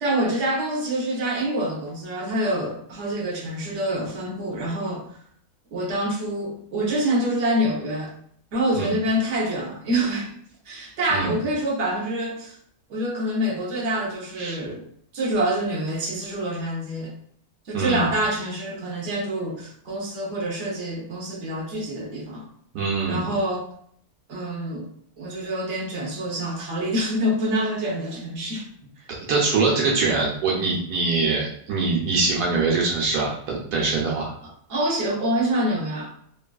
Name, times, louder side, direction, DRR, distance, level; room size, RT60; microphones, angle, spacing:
voice 1, 0.0-5.1 5.7-8.1 8.5-10.3 10.6-12.6 12.9-14.8 15.1-17.1 17.7-22.5 23.1-23.6 24.3-24.9 25.2-28.7 29.0-29.1 34.4-36.1, right 1 dB, 50° right, -3 dB, 1.0 m, -26 dB
voice 2, 17.7-18.1 22.7-23.2 29.3-34.3, right 3 dB, 75° right, -3 dB, 1.1 m, -23 dB
3.2 x 2.3 x 2.3 m, 0.62 s
omnidirectional pair, 1.7 m